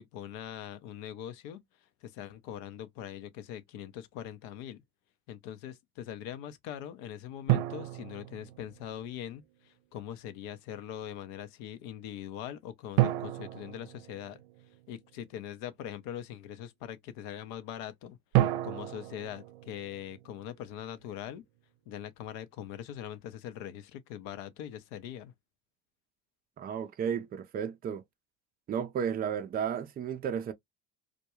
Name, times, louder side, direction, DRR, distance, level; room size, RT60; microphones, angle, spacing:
voice 1, 0.0-1.6 2.0-4.8 5.3-14.4 14.9-18.2 18.6-21.4 21.9-25.3, left 10 dB, 65° left, 0.7 m, -42 dB
sound 1, 7.5-9.1 13.0-14.9 18.3-20.6, right 15 dB, 70° right, 0.6 m, -31 dB
voice 2, 26.6-28.0 28.7-30.5, right 7 dB, 20° right, 0.4 m, -33 dB
2.3 x 2.2 x 2.9 m
hypercardioid pair, 70°, 48 cm